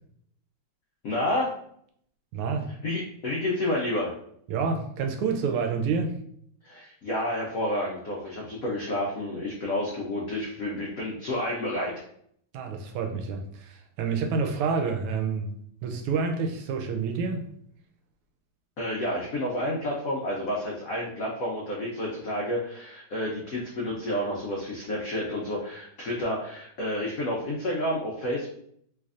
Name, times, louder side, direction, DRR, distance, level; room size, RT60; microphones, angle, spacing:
voice 1, 1.0-1.5 2.8-4.1 6.6-11.9 18.8-28.5, left 1 dB, 85° left, -3 dB, 0.7 m, -30 dB
voice 2, 2.3-2.7 4.5-6.2 12.5-15.5 15.8-17.5, right 5 dB, 85° right, 4 dB, 1.5 m, -28 dB
3.3 x 3.3 x 2.4 m, 0.67 s
omnidirectional pair, 2.4 m